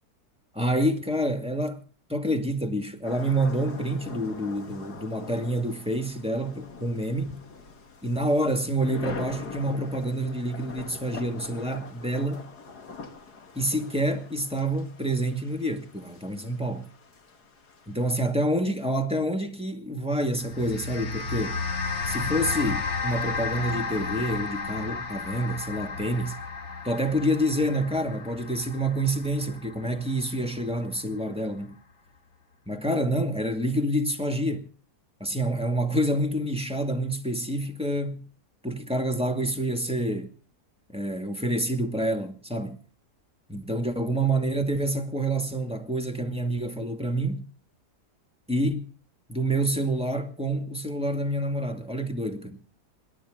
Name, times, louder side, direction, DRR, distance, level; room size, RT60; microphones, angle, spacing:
voice 1, 0.5-1.8 2.1-7.4 8.0-12.5 13.6-16.9 17.9-21.6 22.1-26.4 26.8-31.8 32.7-34.7 35.2-38.2 38.6-40.3 40.9-42.8 43.5-47.5 48.5-48.9 49.3-52.6, right 1 dB, 5° right, 2.1 m, -27 dB
sound 1, 3.0-18.3, left 4 dB, 75° left, 2.4 m, -43 dB
sound 2, 20.4-30.9, left 4 dB, 45° left, 1.9 m, -33 dB
27.0 x 12.5 x 3.9 m
omnidirectional pair, 1.7 m